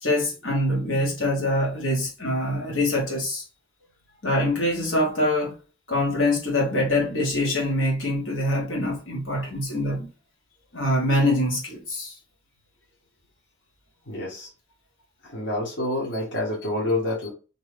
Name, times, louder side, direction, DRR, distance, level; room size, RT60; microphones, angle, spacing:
voice 1, 0.0-3.4 4.2-5.6 5.9-10.1 10.7-12.1, left 1 dB, 90° left, 1.1 m, -24 dB
voice 2, 14.1-14.5 15.2-17.3, left 1 dB, 65° left, 1.0 m, -27 dB
2.7 x 2.3 x 3.2 m
head